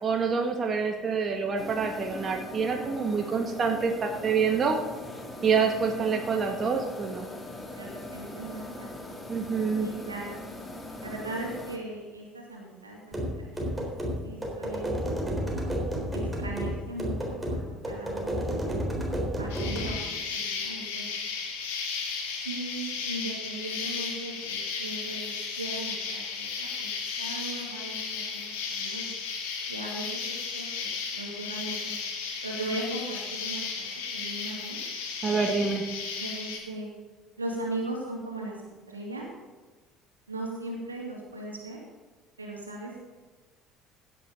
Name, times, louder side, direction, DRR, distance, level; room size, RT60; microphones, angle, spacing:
voice 1, 0.0-4.8 5.4-7.3 9.3-9.9 35.2-35.8, right 5 dB, 35° right, 2 dB, 1.9 m, -27 dB
sound 1, 1.6-11.8, left 1 dB, 20° left, 2.5 m, -41 dB
voice 2, 7.8-8.9 9.8-10.4 11.0-13.9 14.2-15.5 16.1-18.8 19.4-21.0 22.4-26.9 27.2-29.1 29.7-30.9 31.1-32.0 32.4-34.8 36.2-36.9 37.4-38.6 38.9-39.3 40.3-41.8 42.4-43.0, right 2 dB, 85° right, -1 dB, 2.7 m, -38 dB
sound 2, 13.1-20.0, equal, 10° right, 3.8 m, -31 dB
Insect, 19.5-36.6, left 5 dB, 70° left, 2.3 m, -34 dB
16.0 x 9.5 x 4.0 m, 1.3 s
figure-of-eight pair, 60°, 0 cm